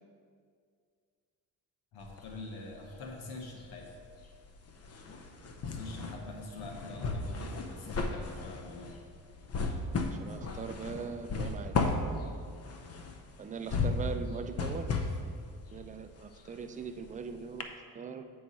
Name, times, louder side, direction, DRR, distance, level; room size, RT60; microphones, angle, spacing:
voice 1, 1.9-3.9 5.6-9.0, left 2 dB, 85° left, 2 dB, 1.2 m, -44 dB
sound 1, 2.0-3.1 3.4-17.2 17.6-17.7, left 3 dB, 40° left, 0.7 m, -35 dB
voice 2, 10.0-11.8 13.4-15.0 15.7-18.2, right 5 dB, 20° right, 8 dB, 0.4 m, -41 dB
8.5 x 4.7 x 4.1 m, 2.1 s
cardioid pair, 95°, 37 cm